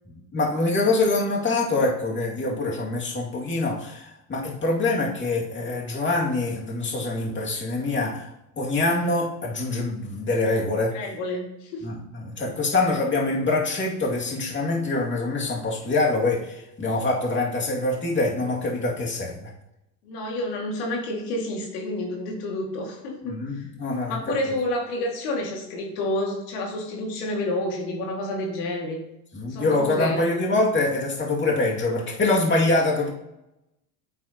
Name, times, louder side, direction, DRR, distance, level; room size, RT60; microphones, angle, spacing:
voice 1, 0.3-8.3 8.6-11.0 11.8-19.5 23.2-24.4 29.3-33.1, left 2 dB, 25° left, -2 dB, 2.3 m, -25 dB
voice 2, 10.9-11.9 20.0-23.7 24.1-29.0 29.5-30.2, left 1 dB, 75° left, 0 dB, 2.3 m, -29 dB
9.1 x 8.2 x 2.9 m, 0.88 s
hypercardioid pair, 90°, 48 cm